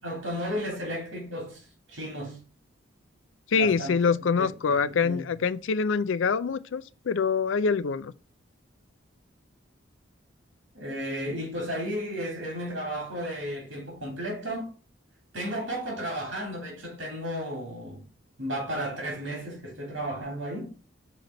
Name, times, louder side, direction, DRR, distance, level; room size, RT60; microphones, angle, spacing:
voice 1, 0.0-2.4 3.5-5.2 10.7-14.7 15.3-18.1 18.4-20.8, equal, 75° right, 3.2 m, -34 dB
voice 2, 3.5-8.1, left 5 dB, 80° left, 0.4 m, -25 dB
6.5 x 4.2 x 4.1 m
head